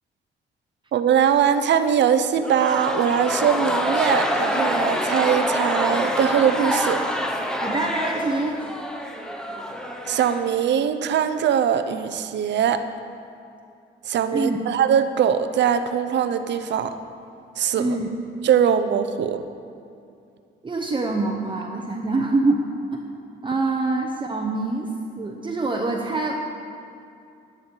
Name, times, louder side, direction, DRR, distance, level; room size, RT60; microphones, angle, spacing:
voice 1, 0.9-7.0 10.1-12.8 14.0-16.9 17.6-18.0 18.4-19.4, right 8 dB, 65° right, 10 dB, 0.7 m, -21 dB
sound 1, 2.4-10.9, equal, 5° left, 0.9 m, -26 dB
voice 2, 7.6-8.6 14.3-14.6 17.8-18.1 20.6-22.6 22.9-23.0 23.4-26.4, right 2 dB, 25° right, 1 dB, 0.8 m, -25 dB
10.5 x 10.5 x 4.5 m, 2.5 s
cardioid pair, 90°, 20 cm